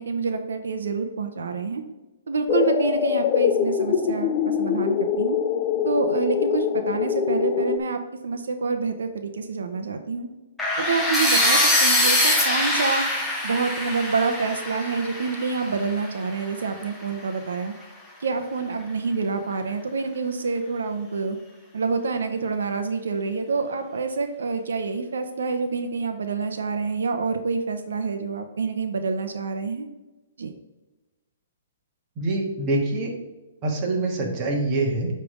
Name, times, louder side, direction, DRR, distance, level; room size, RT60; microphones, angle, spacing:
voice 1, 0.0-1.8 2.3-5.4 5.8-10.3 10.8-13.0 13.4-17.7 18.2-21.4 21.7-29.9 30.4-30.5, right 4 dB, 85° right, 6 dB, 0.8 m, -27 dB
sound 1, 2.5-7.8, left 8 dB, 30° left, 0.4 m, -23 dB
sound 2, 10.6-16.5, left 1 dB, 5° left, 1.0 m, -23 dB
voice 2, 32.2-33.1 33.6-35.1, right 2 dB, 25° right, -1 dB, 1.6 m, -25 dB
8.4 x 3.4 x 5.0 m, 1.1 s
hypercardioid pair, 155°, 0 cm